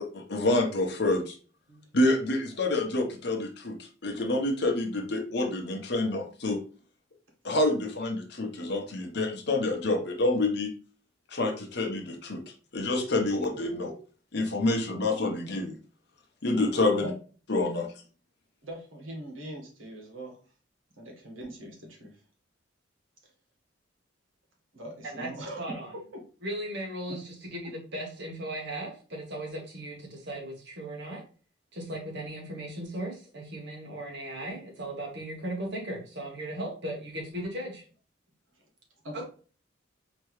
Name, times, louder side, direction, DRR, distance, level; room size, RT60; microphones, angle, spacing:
voice 1, 0.1-1.4 1.9-6.6 7.4-10.7 11.3-12.4 12.7-13.9 14.3-15.7 16.4-17.1 17.5-17.9, left 2 dB, 55° left, 3 dB, 0.9 m, -27 dB
voice 2, 18.6-20.4 21.0-22.1 24.7-25.6 39.0-39.3, right 1 dB, 80° right, 0 dB, 1.4 m, -41 dB
voice 3, 25.6-25.9 26.4-31.2 31.7-37.9 39.1-39.3, right 1 dB, 60° right, 0 dB, 1.2 m, -37 dB
4.4 x 3.0 x 3.1 m, 0.38 s
head